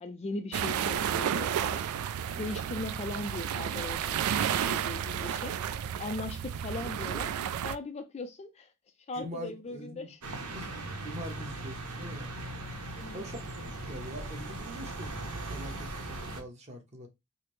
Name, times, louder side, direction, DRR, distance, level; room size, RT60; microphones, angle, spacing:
voice 1, 0.0-1.8 2.4-5.6 6.0-8.7 9.1-10.2 13.0-13.3 13.6-13.7, left 2 dB, 30° left, 0.3 m, -39 dB
sound 1, 0.5-7.8, right 9 dB, 70° right, 0.3 m, -32 dB
voice 2, 9.1-10.1 10.5-12.3 13.1-13.4 13.6-15.1 15.5-17.1, equal, 30° right, 0.9 m, -43 dB
sound 2, 10.2-16.4, right 2 dB, 90° right, 0.8 m, -39 dB
4.9 x 2.0 x 3.1 m
head